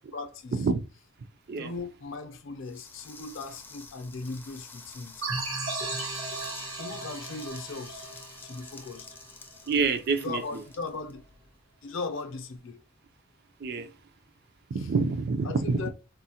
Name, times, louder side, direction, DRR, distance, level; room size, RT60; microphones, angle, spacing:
voice 1, 0.1-0.6 1.6-5.3 6.7-8.1 8.4-9.2 10.2-11.2 11.8-12.8 15.4-15.9, left 3 dB, 65° left, 0.5 m, -38 dB
sound 1, 2.6-11.6, left 3 dB, 10° left, 0.4 m, -49 dB
sound 2, 5.2-9.7, right 3 dB, 90° right, 1.1 m, -36 dB
voice 2, 9.7-10.6 13.6-13.9 14.7-15.9, right 4 dB, 50° right, 0.4 m, -27 dB
3.7 x 2.1 x 2.8 m
head